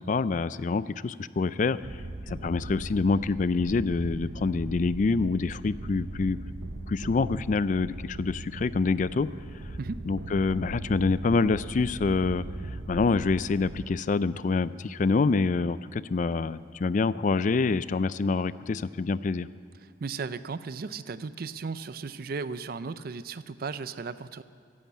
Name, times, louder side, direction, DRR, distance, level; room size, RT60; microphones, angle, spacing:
voice 1, 0.0-1.8 2.3-6.4 6.9-9.3 10.1-12.4 12.9-19.5, left 4 dB, 40° left, 16 dB, 0.3 m, -26 dB
sound 1, 1.8-13.8, right 2 dB, 65° right, 0.9 m, -39 dB
voice 2, 19.8-24.4, right 4 dB, 50° right, 14 dB, 0.4 m, -36 dB
15.0 x 11.0 x 8.5 m, 2.2 s
head